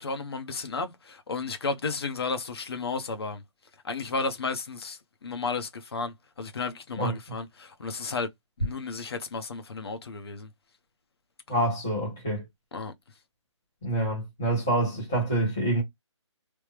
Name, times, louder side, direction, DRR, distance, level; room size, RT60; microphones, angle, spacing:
voice 1, 0.0-3.4 3.8-8.3 8.6-10.5 12.7-12.9, left 4 dB, 55° left, 0.8 m, -33 dB
voice 2, 11.5-12.4 13.8-15.8, right 1 dB, 5° left, 0.3 m, -26 dB
3.2 x 2.0 x 3.2 m
hypercardioid pair, 175°, 16 cm